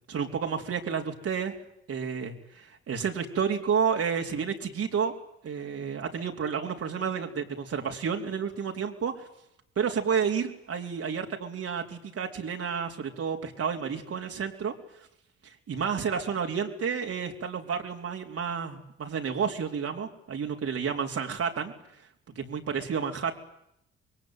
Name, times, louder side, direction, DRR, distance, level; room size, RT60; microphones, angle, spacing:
voice 1, 0.1-1.5 1.9-5.1 5.4-9.3 9.8-14.7 15.7-21.7 22.4-23.3, right 6 dB, 50° right, 2 dB, 4.1 m, -30 dB
26.5 x 22.0 x 9.3 m, 0.78 s
hypercardioid pair, 50°, 29 cm